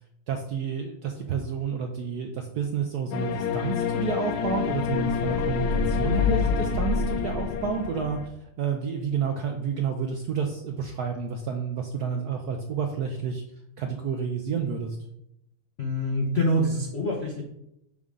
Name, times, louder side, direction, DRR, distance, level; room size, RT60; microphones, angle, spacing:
voice 1, 0.3-8.2 8.6-13.4 13.8-15.0, right 6 dB, 75° right, 3 dB, 0.9 m, -30 dB
sound 1, 3.1-8.3, left 6 dB, 85° left, 1.5 m, -26 dB
voice 2, 15.8-17.4, equal, 60° left, -1 dB, 0.6 m, -25 dB
6.5 x 5.3 x 3.6 m, 0.80 s
omnidirectional pair, 2.3 m